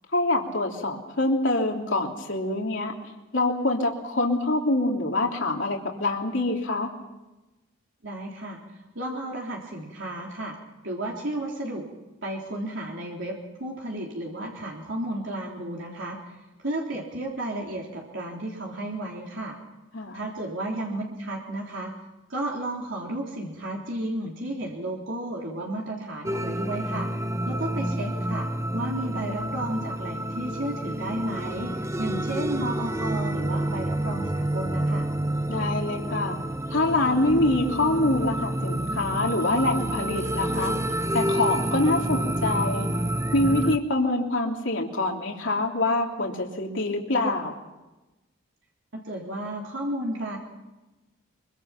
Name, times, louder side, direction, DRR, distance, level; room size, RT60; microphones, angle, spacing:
voice 1, 0.1-2.9 3.3-6.9 19.9-20.2 35.5-36.4 36.7-40.7 41.1-42.9 43.3-47.6, left 2 dB, 60° left, 0 dB, 3.2 m, -25 dB
voice 2, 8.0-10.6 10.8-11.9 12.2-13.3 13.6-19.6 20.1-21.9 22.3-27.1 27.4-28.5 28.7-35.1 48.9-50.4, right 1 dB, 60° right, -2 dB, 3.6 m, -33 dB
sound 1, 26.2-43.8, right 1 dB, 15° right, 0.7 m, -29 dB
25.0 x 24.0 x 6.0 m, 1.1 s
head